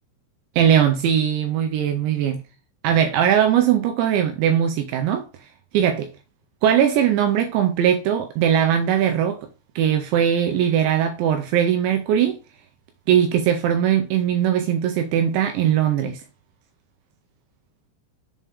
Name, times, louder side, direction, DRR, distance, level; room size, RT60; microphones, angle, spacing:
voice 1, 0.6-2.4 2.8-5.3 5.7-6.1 6.6-9.4 9.8-12.4 13.1-16.2, right 9 dB, 80° right, 2.6 m, -20 dB
7.3 x 4.2 x 3.5 m
omnidirectional pair, 5.8 m